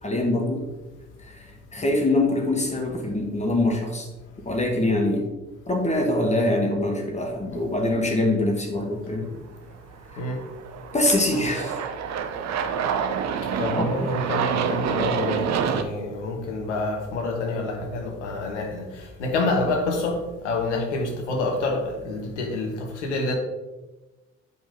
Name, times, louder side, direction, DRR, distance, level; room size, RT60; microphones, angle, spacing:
voice 1, 0.0-0.7 1.2-1.5 1.7-4.1 4.5-5.3 5.7-9.3 10.3-10.4 10.9-11.8 13.8-13.9, left 1 dB, 20° left, 1 dB, 2.0 m, -24 dB
Aircraft, 10.1-15.8, right 7 dB, 50° right, 0.8 m, -27 dB
voice 2, 13.6-18.8 19.2-23.3, left 2 dB, 80° left, 2 dB, 1.2 m, -27 dB
8.5 x 5.3 x 3.7 m, 1.1 s
hypercardioid pair, 50°, 35 cm